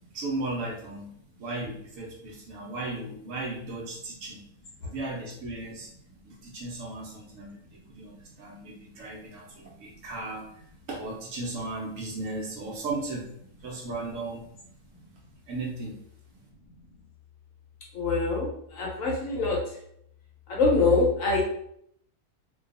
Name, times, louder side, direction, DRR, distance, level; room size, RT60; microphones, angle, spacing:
voice 1, 0.1-1.1 1.4-4.4 4.8-5.9 6.3-10.5 10.9-13.3 13.6-14.5 15.5-16.0, right 2 dB, 65° right, -2 dB, 0.9 m, -36 dB
voice 2, 17.9-19.6 20.5-21.4, left 3 dB, 65° left, -2 dB, 0.9 m, -24 dB
2.6 x 2.2 x 2.4 m, 0.70 s
omnidirectional pair, 1.6 m